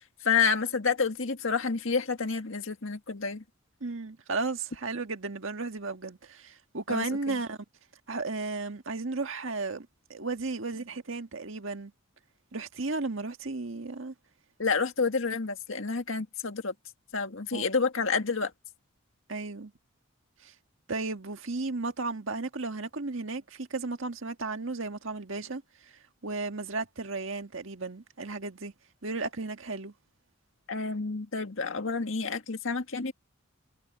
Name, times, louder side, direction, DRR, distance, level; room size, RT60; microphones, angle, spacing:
voice 1, 0.2-3.4 6.9-7.3 14.6-16.7 17.1-18.5 30.7-33.1, left 5 dB, 70° left, 1.9 m, -29 dB
voice 2, 3.8-7.6 8.1-11.9 12.5-14.1 17.5-17.6 19.3-19.7 20.4-20.5 20.9-25.6 26.2-28.7 29.0-29.9, right 3 dB, 65° right, 1.7 m, -34 dB
head